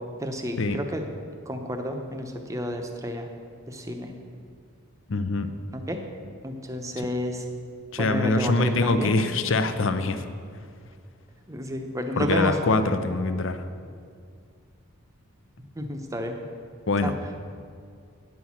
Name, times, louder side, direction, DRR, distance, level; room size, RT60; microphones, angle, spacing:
voice 1, 0.2-1.0 1.5-3.3 3.7-4.1 5.7-6.0 6.4-7.4 8.0-9.2 11.5-12.5 15.8-16.3 17.0-17.1, equal, 15° right, 4 dB, 0.8 m, -31 dB
voice 2, 5.1-5.5 7.9-10.2 12.1-13.6 16.9-17.1, left 3 dB, 65° left, 10 dB, 0.6 m, -24 dB
9.7 x 6.2 x 7.2 m, 2.2 s
head